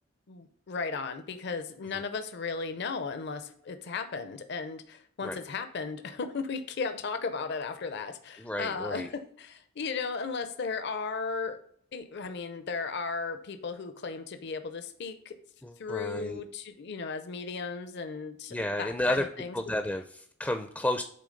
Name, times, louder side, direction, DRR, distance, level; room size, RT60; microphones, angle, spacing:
voice 1, 0.3-11.6 11.9-15.3 15.8-19.6, left 4 dB, 60° left, 9 dB, 0.6 m, -35 dB
voice 2, 8.4-9.1 15.6-16.4 18.5-19.3 19.5-21.0, left 1 dB, 10° left, 7 dB, 0.4 m, -32 dB
8.5 x 3.4 x 3.9 m, 0.62 s
head